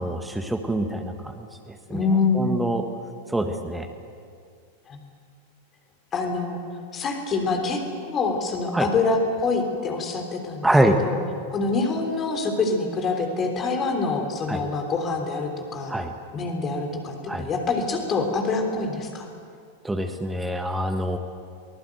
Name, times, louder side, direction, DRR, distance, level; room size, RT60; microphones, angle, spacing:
voice 1, 0.0-2.0 2.3-2.8 3.3-3.9 8.7-8.9 10.6-11.0 14.5-14.6 15.9-16.1 17.3-17.5 19.8-21.2, right 1 dB, 5° right, 5 dB, 1.5 m, -25 dB
voice 2, 1.9-2.5 4.9-5.0 6.1-6.6 6.9-7.8 8.1-10.7 11.0-11.2 11.5-15.9 16.3-19.3, left 3 dB, 25° left, 3 dB, 3.4 m, -25 dB
24.0 x 19.0 x 8.0 m, 2.2 s
figure-of-eight pair, 90°, 0 cm